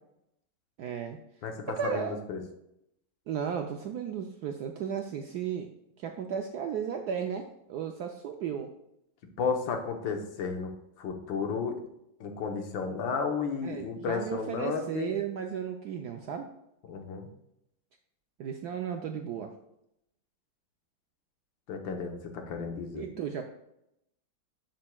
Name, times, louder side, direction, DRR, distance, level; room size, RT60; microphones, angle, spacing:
voice 1, 0.8-1.2 1.8-2.2 3.3-5.7 6.0-8.7 13.6-16.5 18.4-19.5 22.9-23.4, right 7 dB, 75° right, 4 dB, 0.9 m, -34 dB
voice 2, 1.4-2.4 9.4-10.7 11.0-11.7 12.2-15.1 16.9-17.3 21.7-23.0, left 5 dB, 70° left, 4 dB, 1.7 m, -33 dB
11.5 x 6.4 x 2.3 m, 0.81 s
omnidirectional pair, 2.2 m